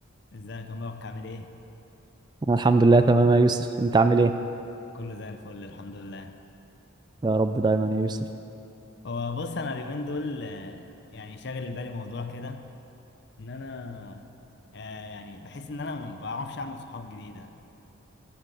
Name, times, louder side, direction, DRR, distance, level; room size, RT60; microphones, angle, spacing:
voice 1, 0.3-1.5 4.9-6.4 9.0-12.6 13.4-14.3 14.7-17.7, left 3 dB, 55° left, 7 dB, 0.7 m, -36 dB
voice 2, 2.5-4.4 7.2-8.2, right 3 dB, 20° right, 9 dB, 0.3 m, -20 dB
13.0 x 7.3 x 6.8 m, 2.8 s
head